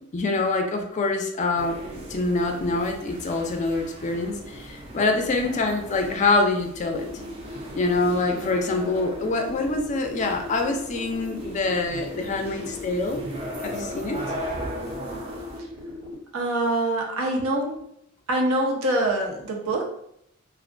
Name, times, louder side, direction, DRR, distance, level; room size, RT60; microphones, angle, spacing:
voice 1, 0.1-7.1 7.7-13.2 13.6-14.2, left 3 dB, 35° left, 3 dB, 0.3 m, -25 dB
sound 1, 1.5-15.6, right 1 dB, 30° right, 0.5 m, -38 dB
sound 2, 6.9-16.1, left 2 dB, 70° right, 1.1 m, -38 dB
voice 2, 16.3-17.9 18.3-19.9, right 1 dB, 90° right, 1 dB, 0.6 m, -25 dB
2.3 x 2.1 x 2.4 m, 0.73 s
head